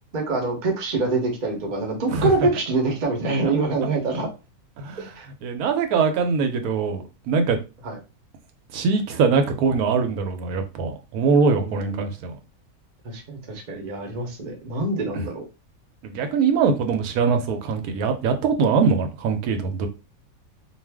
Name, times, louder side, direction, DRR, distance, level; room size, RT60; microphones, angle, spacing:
voice 1, 0.1-4.3 5.0-5.3 7.8-8.0 11.5-12.1 13.0-15.4, right 3 dB, 40° right, 0.7 m, -25 dB
voice 2, 3.4-3.9 4.8-5.1 5.4-7.6 8.7-12.4 15.1-15.2 16.0-19.9, right 5 dB, 85° right, 1.1 m, -22 dB
2.4 x 2.4 x 3.3 m
omnidirectional pair, 1.5 m